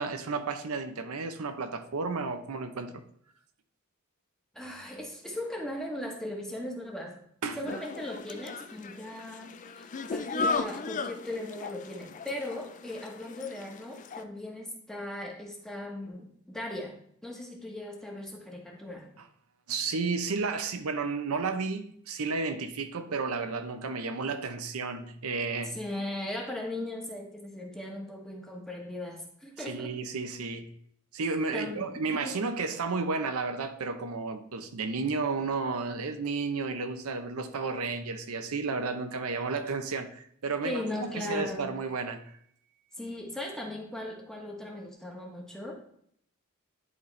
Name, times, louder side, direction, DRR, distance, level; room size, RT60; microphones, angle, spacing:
voice 1, 0.0-3.0 7.4-7.6 19.7-25.7 29.6-30.7 31.1-42.3, right 4 dB, 75° right, 8 dB, 0.7 m, -32 dB
voice 2, 4.5-7.2 7.6-17.0 17.2-19.1 25.7-29.9 31.5-32.4 40.6-41.7 43.0-45.8, left 1 dB, ahead, 0 dB, 1.1 m, -38 dB
sound 1, 7.6-14.2, left 4 dB, 35° left, 0.4 m, -36 dB
11.0 x 4.1 x 3.2 m, 0.66 s
head